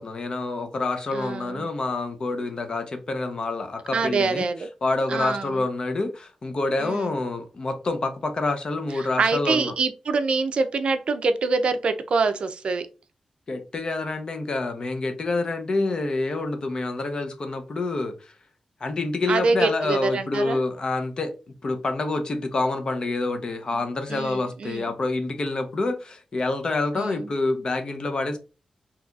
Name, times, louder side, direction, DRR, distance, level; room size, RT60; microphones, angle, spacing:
voice 1, 0.0-4.5 4.8-9.7 13.5-18.3 18.8-21.3 21.6-28.4, left 2 dB, 45° left, 0.6 m, -27 dB
voice 2, 1.1-1.7 3.9-4.7 5.1-5.6 6.8-7.1 9.0-12.8 19.3-20.6 23.7-23.8 24.1-24.9 27.0-27.3, right 4 dB, 60° right, 0.4 m, -25 dB
3.9 x 2.8 x 2.3 m
wide cardioid pair, 125°, 2 cm